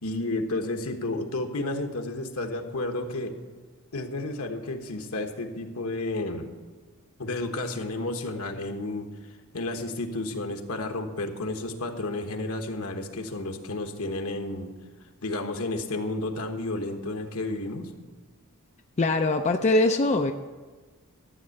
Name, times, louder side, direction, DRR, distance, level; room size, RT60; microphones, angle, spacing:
voice 1, 0.0-3.4 3.9-6.5 7.2-14.7 15.2-17.9, left 2 dB, 70° left, 5 dB, 1.3 m, -32 dB
voice 2, 19.0-20.3, left 2 dB, 30° left, 5 dB, 0.5 m, -22 dB
13.0 x 8.0 x 6.6 m, 1.4 s
head